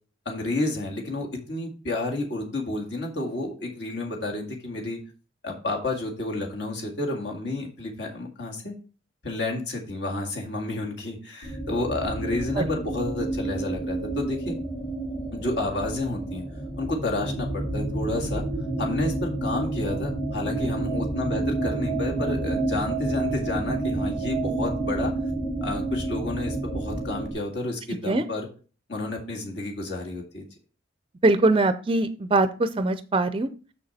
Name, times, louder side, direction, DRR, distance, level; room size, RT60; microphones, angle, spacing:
voice 1, 0.3-5.0 5.4-8.7 9.2-14.6 15.3-16.4 16.8-18.4 18.8-25.1 25.6-28.5 28.9-30.5, left 2 dB, 60° left, 0 dB, 1.9 m, -30 dB
sound 1, 11.4-27.3, right 2 dB, 40° left, 2.1 m, -29 dB
voice 2, 31.2-33.5, right 2 dB, 30° right, 11 dB, 0.4 m, -22 dB
7.1 x 6.5 x 4.1 m, 0.36 s
head